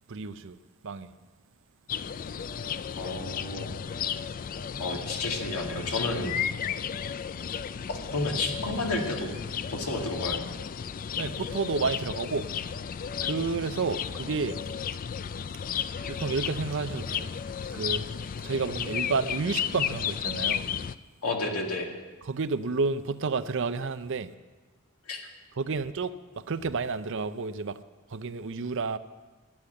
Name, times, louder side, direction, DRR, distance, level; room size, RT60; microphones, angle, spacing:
voice 1, 0.1-0.6 0.8-1.1 11.2-12.7 13.2-14.6 16.1-17.3 17.7-18.0 18.4-20.6 22.3-24.3 25.6-26.1 26.5-27.8 28.1-29.0, right 4 dB, 55° right, 0.6 m, -30 dB
sound 1, 1.9-21.0, left 8 dB, 40° left, 0.3 m, -33 dB
voice 2, 2.9-3.8 4.8-6.4 8.1-9.3 9.7-10.4 21.2-21.9 25.1-25.2, left 2 dB, 90° left, 2.1 m, -31 dB
12.0 x 9.9 x 8.0 m
head